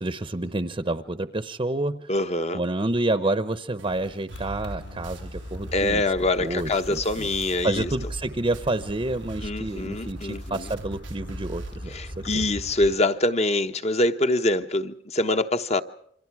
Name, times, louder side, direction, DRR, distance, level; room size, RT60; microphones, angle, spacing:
voice 1, 0.0-2.1 2.5-6.0 6.4-7.3 7.6-12.4, right 2 dB, 30° right, 0.8 m, -29 dB
voice 2, 2.1-2.6 5.7-7.9 9.4-10.7 11.9-15.8, left 2 dB, 35° left, 1.1 m, -25 dB
sound 1, 3.8-8.3 8.5-11.8, right 2 dB, 85° right, 0.9 m, -42 dB
sound 2, 4.3-13.0, equal, 70° left, 5.4 m, -39 dB
28.5 x 25.5 x 4.8 m
head